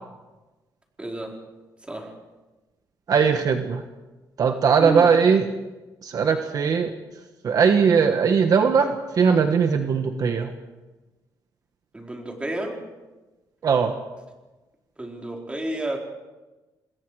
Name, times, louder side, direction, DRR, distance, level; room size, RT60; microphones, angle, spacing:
voice 1, 1.0-1.3 1.9-2.1 4.8-5.2 11.9-12.8 15.0-16.0, right 1 dB, 15° right, 0 dB, 4.4 m, -30 dB
voice 2, 3.1-3.8 4.4-5.5 6.0-6.9 7.4-10.5 13.6-14.0, right 6 dB, 55° right, 6 dB, 1.4 m, -19 dB
27.0 x 21.0 x 4.9 m, 1.1 s
cardioid pair, 120°, 8 cm